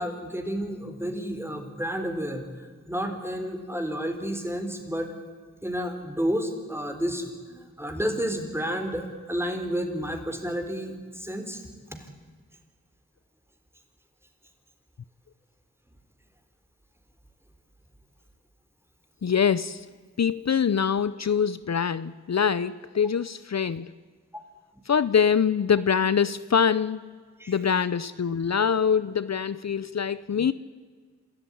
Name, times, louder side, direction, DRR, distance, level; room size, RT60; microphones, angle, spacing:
voice 1, 0.0-2.5 2.9-5.1 5.6-11.6 27.4-27.5, equal, 10° right, 6 dB, 4.2 m, -31 dB
voice 2, 19.2-19.9 20.2-23.9 24.9-27.1 27.5-30.5, left 7 dB, 60° left, 16 dB, 0.6 m, -24 dB
27.0 x 13.5 x 9.9 m, 1.5 s
wide cardioid pair, 50°, 30 cm